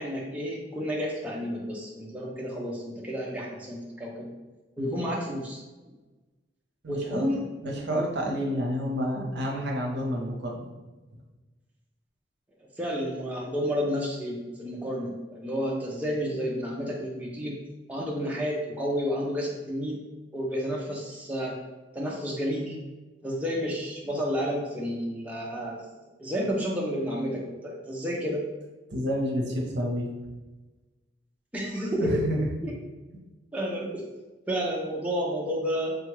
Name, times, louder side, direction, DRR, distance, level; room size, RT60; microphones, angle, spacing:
voice 1, 0.0-4.3 4.8-5.6 6.9-7.5 12.8-17.6 17.9-20.0 20.3-21.6 21.9-22.8 23.2-25.8 26.2-28.4 31.5-32.2 32.6-32.8 33.5-34.0 34.4-36.0, equal, 10° right, -3 dB, 0.4 m, -31 dB
voice 2, 6.8-10.7 28.9-30.1 32.0-32.5, equal, 65° right, 0 dB, 0.7 m, -29 dB
3.7 x 2.3 x 3.0 m, 1.2 s
head